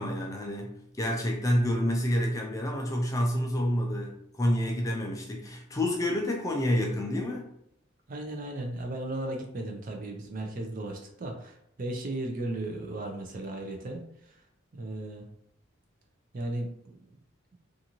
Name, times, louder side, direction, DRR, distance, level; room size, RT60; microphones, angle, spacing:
voice 1, 0.0-7.5, equal, 15° left, 1 dB, 0.4 m, -28 dB
voice 2, 8.1-14.0 14.7-15.3 16.3-17.2, right 1 dB, 40° right, 2 dB, 0.5 m, -36 dB
2.6 x 2.5 x 2.9 m, 0.72 s
head